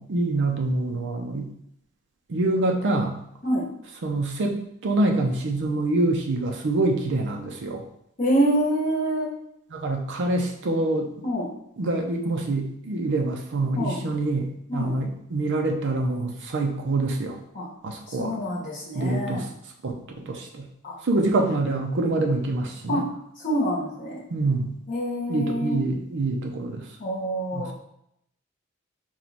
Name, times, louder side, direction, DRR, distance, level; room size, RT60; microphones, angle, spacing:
voice 1, 0.0-1.5 2.3-3.2 4.0-7.8 9.7-11.1 11.8-17.4 17.8-18.4 18.9-19.5 19.8-20.7 21.0-23.0 24.3-24.8 25.3-26.9 27.5-27.7, right 2 dB, 60° right, 3 dB, 0.6 m, -25 dB
voice 2, 8.2-9.3 11.2-11.5 13.7-14.0 14.7-14.9 17.5-17.7 18.1-19.4 20.8-21.0 22.9-23.0 23.4-24.2 24.9-25.8 27.0-27.7, equal, 40° left, -5 dB, 1.0 m, -26 dB
4.5 x 2.3 x 4.0 m, 0.74 s
head